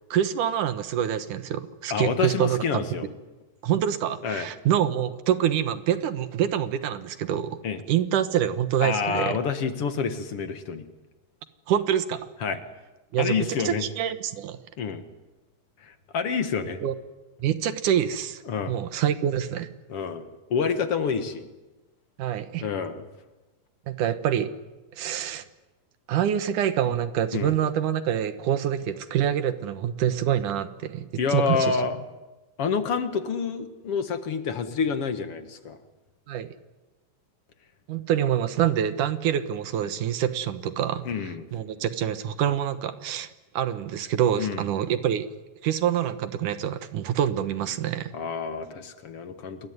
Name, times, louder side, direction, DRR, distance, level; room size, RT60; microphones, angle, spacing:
voice 1, 0.1-2.8 3.6-7.6 7.9-9.4 11.7-12.3 13.1-14.6 16.8-16.9 17.4-18.4 18.7-19.7 22.2-22.7 23.9-24.5 25.0-25.4 26.1-31.8 36.3-36.5 37.9-41.1 41.5-43.3 43.5-45.3 45.6-48.1, right 10 dB, 75° right, 11 dB, 2.7 m, -26 dB
voice 2, 1.9-3.1 4.2-4.5 7.6-7.8 8.8-10.8 12.4-12.6 13.2-13.9 14.8-15.0 15.8-16.8 18.5-18.7 19.9-21.5 22.6-23.1 27.3-27.6 31.2-32.0 32.6-35.8 41.1-41.5 44.4-44.7 48.1-49.7, left 6 dB, 50° left, 9 dB, 2.2 m, -28 dB
27.5 x 21.5 x 9.6 m, 1.1 s
omnidirectional pair, 3.8 m